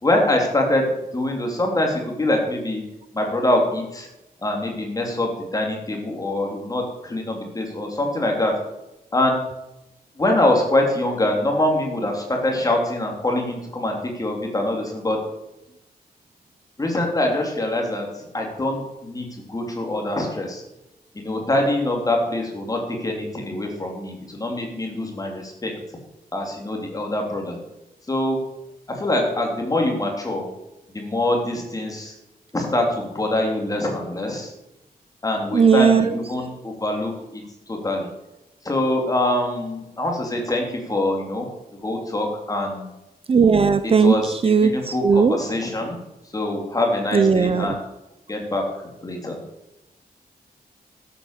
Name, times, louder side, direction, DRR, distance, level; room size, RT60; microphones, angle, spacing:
voice 1, 0.0-0.9 1.1-2.8 3.1-4.1 4.4-8.5 9.1-9.4 10.2-15.2 16.8-20.6 21.1-25.7 26.3-27.6 28.1-28.4 28.9-30.5 30.9-32.1 32.5-34.5 35.2-38.1 38.6-41.5 41.8-42.9 44.0-46.0 46.3-47.8 48.3-48.6 49.0-49.4, left 1 dB, 20° left, 1 dB, 3.0 m, -24 dB
voice 2, 35.5-36.2 43.3-45.4 47.1-47.7, right 5 dB, 35° right, 11 dB, 0.6 m, -17 dB
13.0 x 8.4 x 6.6 m, 0.90 s
wide cardioid pair, 170°, 16 cm